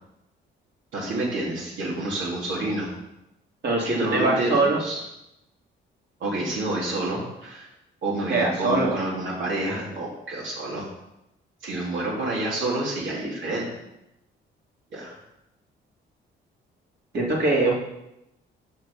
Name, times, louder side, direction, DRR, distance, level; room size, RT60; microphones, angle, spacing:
voice 1, 0.9-2.9 3.8-5.0 6.2-7.7 8.0-10.8 11.6-13.7 14.9-15.2, right 1 dB, 75° right, -4 dB, 3.2 m, -28 dB
voice 2, 3.6-4.8 8.3-9.0 17.1-17.7, right 2 dB, 60° right, -3 dB, 3.0 m, -22 dB
7.7 x 5.8 x 6.9 m, 0.87 s
cardioid pair, 90°, 20 cm